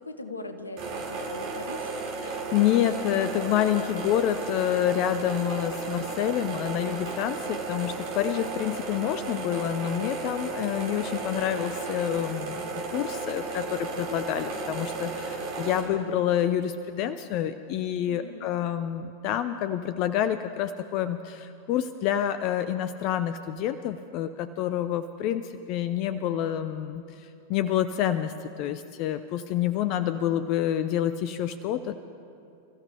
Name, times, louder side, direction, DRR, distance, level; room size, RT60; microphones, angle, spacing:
voice 1, 0.0-1.9 18.1-18.5, left 2 dB, 80° left, 7 dB, 1.2 m, -40 dB
sound 1, 0.8-15.8, right 3 dB, 45° right, 4.9 m, -34 dB
voice 2, 2.2-32.0, left 11 dB, 40° left, 12 dB, 0.5 m, -28 dB
28.0 x 14.5 x 3.4 m, 2.6 s
figure-of-eight pair, 90°, 0 cm